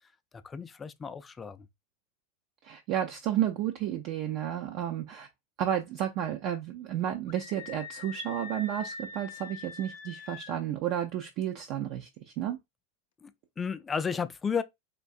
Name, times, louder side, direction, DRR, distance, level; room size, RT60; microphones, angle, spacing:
voice 1, 0.3-1.7 13.2-14.6, left 6 dB, 20° left, 0.4 m, -33 dB
voice 2, 2.6-5.3 5.6-12.1 12.4-12.6, right 11 dB, 50° right, 0.5 m, -32 dB
Screaming, 7.3-10.6, left 4 dB, 65° left, 0.6 m, -43 dB
4.5 x 2.6 x 2.4 m
figure-of-eight pair, 85°, 0 cm